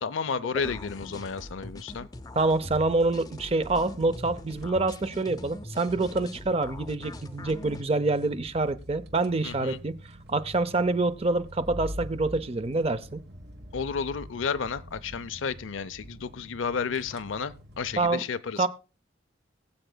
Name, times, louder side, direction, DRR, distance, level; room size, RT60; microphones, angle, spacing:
voice 1, 0.0-2.1 9.4-9.8 13.7-18.7, left 5 dB, 85° left, 0.6 m, -32 dB
sound 1, 0.6-7.8, left 1 dB, 20° left, 0.6 m, -42 dB
voice 2, 2.4-10.0 10.3-13.2 18.0-18.2 18.6-18.7, right 2 dB, 30° right, 0.5 m, -26 dB
sound 2, 3.5-18.1, equal, 55° right, 1.2 m, -45 dB
22.0 x 7.9 x 2.2 m
head